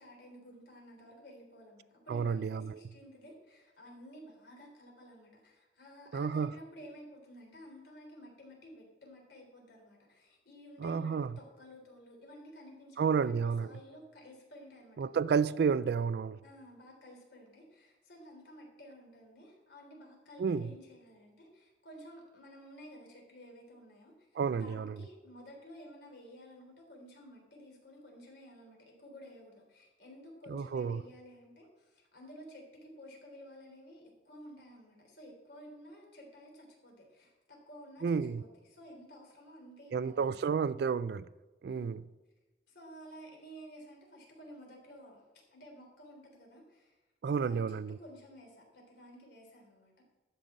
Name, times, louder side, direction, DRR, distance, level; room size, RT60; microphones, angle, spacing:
voice 1, 0.0-15.0 16.4-40.4 41.7-42.0 42.7-45.2 45.5-47.0 47.2-50.0, equal, 65° left, 3.5 m, -53 dB
voice 2, 2.1-2.8 6.1-6.5 10.8-11.3 13.0-13.7 15.0-16.4 20.4-20.7 24.4-25.0 30.5-31.0 38.0-38.4 39.9-41.3 41.6-42.0 47.2-48.0, right 6 dB, 65° right, 0.3 m, -31 dB
13.0 x 5.5 x 7.4 m
head